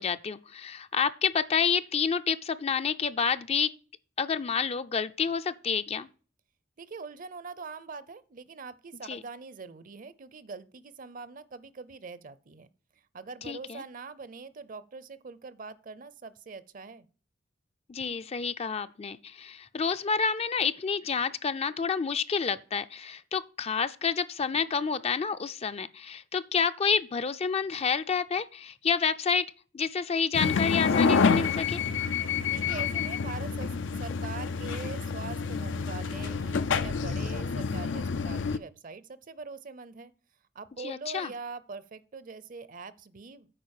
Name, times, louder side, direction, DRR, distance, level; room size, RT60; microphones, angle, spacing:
voice 1, 0.0-3.7 4.2-6.1 9.1-9.2 13.5-13.8 17.9-29.5 29.7-31.8 40.8-41.3, left 6 dB, 35° left, 0.4 m, -29 dB
voice 2, 6.8-12.7 13.1-17.1 32.5-33.7 34.0-40.1 40.5-43.5, right 4 dB, 45° right, 0.6 m, -43 dB
sound 1, 30.3-38.6, left 5 dB, 85° left, 0.5 m, -28 dB
8.7 x 5.1 x 6.4 m
head